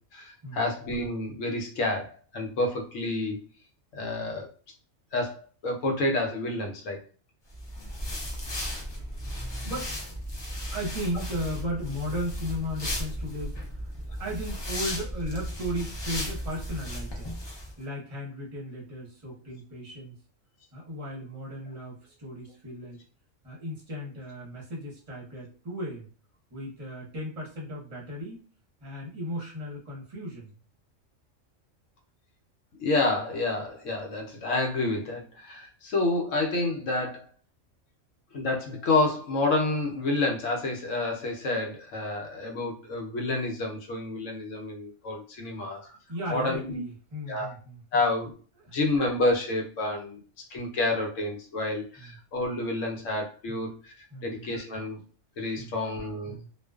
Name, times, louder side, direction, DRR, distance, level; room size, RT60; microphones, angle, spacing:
voice 1, 0.1-3.4 3.9-4.5 5.1-7.0 10.5-10.7 32.8-37.2 38.3-45.9 46.3-46.8 47.3-47.5 47.9-48.3 48.7-50.2 50.5-53.9 54.2-55.0 55.4-56.4, left 2 dB, 75° left, 2 dB, 1.0 m, -29 dB
sound 1, 7.5-17.7, equal, 45° left, 0.3 m, -35 dB
voice 2, 9.6-9.9 10.7-13.6 14.2-17.3 17.8-20.2 20.7-23.0 23.4-26.1 26.5-28.4 28.8-30.5 45.8-48.0 48.6-48.7 52.0-52.2 53.5-53.7 54.1-54.5 55.6-55.8 56.2-56.5, equal, 30° right, -4 dB, 0.9 m, -36 dB
2.4 x 2.3 x 2.3 m, 0.40 s
omnidirectional pair, 1.3 m